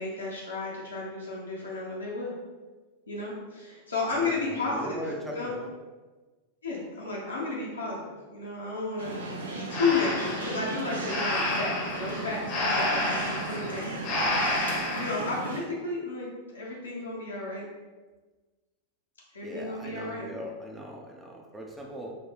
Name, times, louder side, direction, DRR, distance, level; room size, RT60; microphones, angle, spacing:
voice 1, 0.0-2.3 3.1-5.0 5.3-5.5 6.6-9.1 9.5-16.3 16.5-17.6 19.3-20.3, left 3 dB, 75° left, -5 dB, 0.8 m, -33 dB
voice 2, 4.1-5.7 19.4-22.1, equal, 10° right, 0 dB, 0.5 m, -39 dB
sound 1, 9.0-15.6, right 3 dB, 70° right, 0.6 m, -36 dB
Breathing, 9.7-15.2, left 1 dB, 45° left, 0.8 m, -30 dB
4.0 x 2.2 x 3.3 m, 1.3 s
figure-of-eight pair, 90°, 0 cm